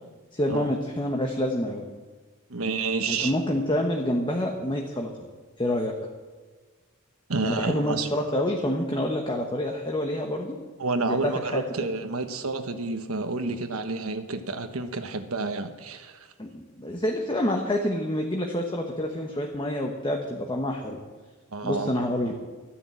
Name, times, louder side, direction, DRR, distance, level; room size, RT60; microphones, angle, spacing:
voice 1, 0.3-1.8 3.1-5.1 5.6-6.0 7.4-10.6 11.0-11.6 16.4-21.0 21.6-22.4, left 1 dB, 20° left, 1 dB, 1.2 m, -27 dB
voice 2, 2.5-3.3 7.3-8.1 10.8-16.3 21.5-21.9, right 3 dB, 90° right, 7 dB, 1.2 m, -29 dB
13.5 x 10.0 x 7.7 m, 1.4 s
head